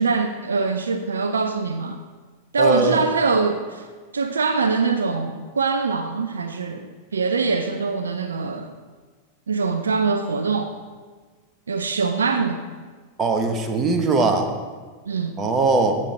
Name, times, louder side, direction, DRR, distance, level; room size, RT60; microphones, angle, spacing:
voice 1, 0.0-2.0 2.5-3.9 4.1-8.7 9.5-10.7 11.7-12.6 15.1-15.4, right 4 dB, 70° right, 8 dB, 0.5 m, -23 dB
voice 2, 2.6-3.0 13.2-14.5 15.4-16.0, right 3 dB, 25° right, 5 dB, 1.2 m, -20 dB
15.5 x 7.4 x 3.3 m, 1.4 s
figure-of-eight pair, 90°, 0 cm